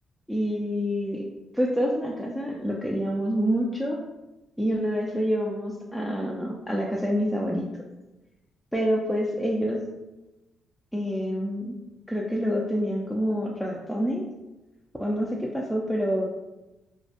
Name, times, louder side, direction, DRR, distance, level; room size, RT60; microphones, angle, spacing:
voice 1, 0.3-1.2 1.5-4.0 4.6-7.8 8.7-9.8 10.9-11.8 12.1-14.2 15.0-16.3, equal, 5° left, -3 dB, 0.3 m, -27 dB
2.2 x 2.0 x 2.8 m, 1.0 s
supercardioid pair, 55°, 0 cm